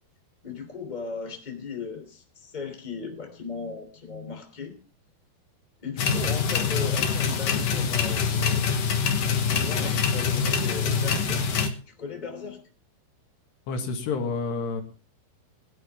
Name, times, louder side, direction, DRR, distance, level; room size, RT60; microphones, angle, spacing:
voice 1, 0.4-4.7 5.8-8.7 9.4-11.5 11.9-12.6, left 5 dB, 10° left, 5 dB, 2.5 m, -37 dB
sound 1, 6.0-11.7, left 6 dB, 65° left, 1.7 m, -25 dB
voice 2, 13.7-14.8, left 4 dB, 80° left, 5 dB, 4.0 m, -29 dB
20.0 x 11.0 x 3.5 m, 0.36 s
omnidirectional pair, 4.8 m